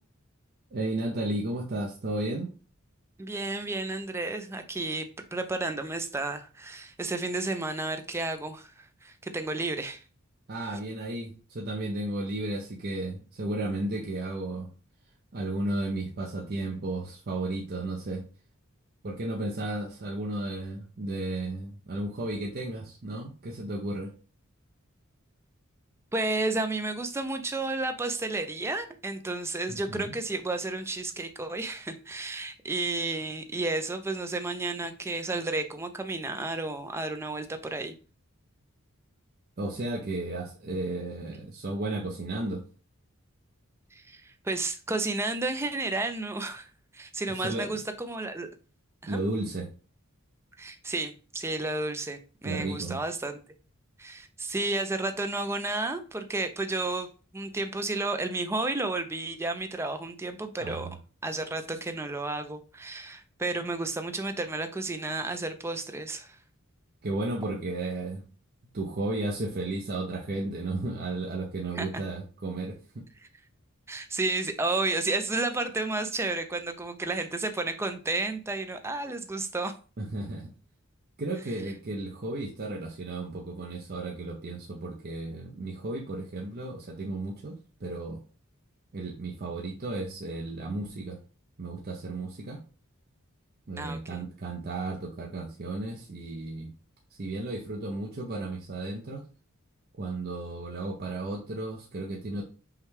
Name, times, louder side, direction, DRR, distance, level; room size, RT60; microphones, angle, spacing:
voice 1, 0.7-2.5 10.5-14.7 15.3-18.2 19.0-24.1 29.7-30.1 39.6-42.6 47.4-47.7 49.1-49.7 52.4-53.0 60.6-60.9 67.0-68.2 68.7-73.1 80.0-80.5 81.2-88.2 88.9-91.2 91.6-92.6 93.7-96.7 97.2-99.2 100.0-102.4, right 2 dB, 45° right, 0.7 m, -34 dB
voice 2, 3.2-10.0 10.6-10.8 26.1-37.9 43.9-48.5 49.0-49.2 50.6-53.4 54.0-57.1 57.3-60.9 61.2-66.4 71.7-72.0 73.9-79.7 93.8-94.2, right 2 dB, 10° right, 0.4 m, -32 dB
5.6 x 2.3 x 3.3 m
head